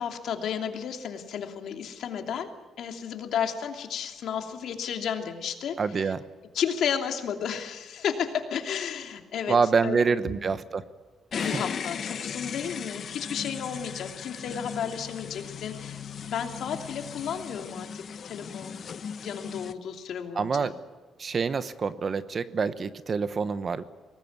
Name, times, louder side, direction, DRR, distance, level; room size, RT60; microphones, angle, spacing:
voice 1, 0.0-2.5 2.8-6.1 6.5-9.6 9.8-10.6 11.4-18.8 19.2-20.7, left 8 dB, 65° left, 4 dB, 2.8 m, -33 dB
voice 2, 5.8-6.2 9.5-10.8 11.4-11.6 20.4-20.7 21.2-23.8, right 5 dB, 35° right, 13 dB, 1.0 m, -26 dB
sound 1, 11.3-19.7, left 7 dB, 45° left, 0.9 m, -37 dB
23.5 x 19.5 x 9.6 m, 1.3 s
cardioid pair, 140°, 0 cm